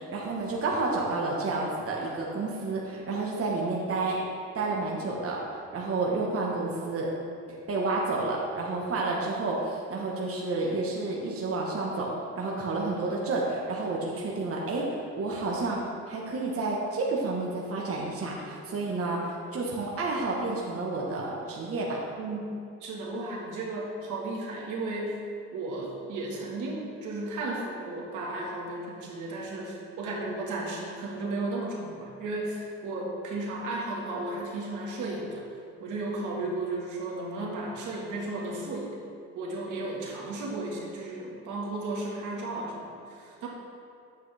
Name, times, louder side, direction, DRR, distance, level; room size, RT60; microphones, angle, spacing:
voice 1, 0.0-4.2 4.5-7.1 7.5-12.1 12.4-15.8 16.1-22.0, right 3 dB, 50° right, -3 dB, 1.3 m, -30 dB
voice 2, 22.2-22.5 22.8-25.2 25.5-35.4 35.8-39.0 39.4-43.5, right 2 dB, 80° right, -3 dB, 1.8 m, -34 dB
9.1 x 7.7 x 3.5 m, 2.4 s
cardioid pair, 90°, 30 cm